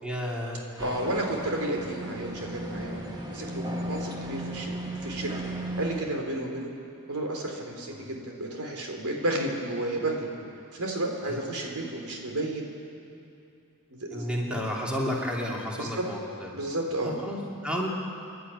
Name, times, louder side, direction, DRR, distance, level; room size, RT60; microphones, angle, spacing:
voice 1, 0.0-1.2 7.9-8.1 10.3-10.4 11.2-11.4 14.1-16.6 17.0-17.9, equal, 5° right, -3 dB, 2.8 m, -32 dB
sound 1, 0.8-6.0, right 1 dB, 20° right, 2.1 m, -35 dB
voice 2, 0.8-4.7 5.0-5.3 5.8-6.7 7.1-10.3 10.7-12.7 13.9-14.3 15.7-16.0 16.5-17.2, right 1 dB, 80° right, 1 dB, 3.6 m, -32 dB
28.5 x 11.5 x 9.8 m, 2.7 s
head